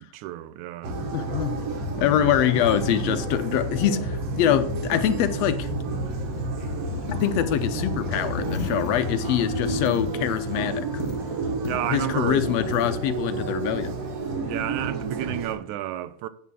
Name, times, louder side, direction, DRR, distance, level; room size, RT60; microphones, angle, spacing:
voice 1, 0.1-1.0 11.7-12.4 14.5-16.3, right 13 dB, 80° right, 2.0 m, -31 dB
sound 1, 0.8-15.5, right 2 dB, 60° right, 2.5 m, -30 dB
voice 2, 1.1-1.6 2.0-5.7 7.2-10.8 11.9-13.9, left 10 dB, 75° left, 1.6 m, -24 dB
Coin (dropping), 5.7-14.3, left 3 dB, 35° left, 0.9 m, -38 dB
8.3 x 5.9 x 7.4 m
omnidirectional pair, 3.5 m